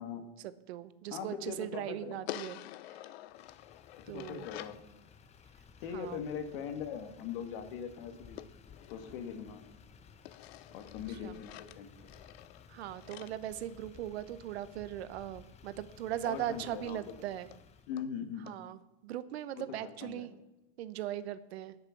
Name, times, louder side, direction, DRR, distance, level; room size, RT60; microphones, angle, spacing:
voice 1, 0.4-2.6 2.9-3.0 4.1-4.4 5.9-6.2 11.2-11.4 12.7-17.5 18.4-20.3 20.8-21.8, right 12 dB, 85° right, 15 dB, 1.0 m, -39 dB
voice 2, 1.1-2.2 4.1-4.8 5.8-8.4 8.9-9.6 10.7-11.9 16.2-17.0 17.9-18.5 19.6-20.3, left 7 dB, 65° left, 8 dB, 1.9 m, -41 dB
sound 1, 2.3-4.9 8.4-9.8 10.2-14.4 16.3-16.4 16.7-16.8 17.1-17.2 17.5-17.6 18.0-18.1 18.5-18.6, left 14 dB, 80° left, 0.6 m, -48 dB
Motor vehicle (road), 3.3-17.9, left 6 dB, 20° left, 0.8 m, -57 dB
18.5 x 6.7 x 5.8 m, 0.98 s
supercardioid pair, 140°, 31 cm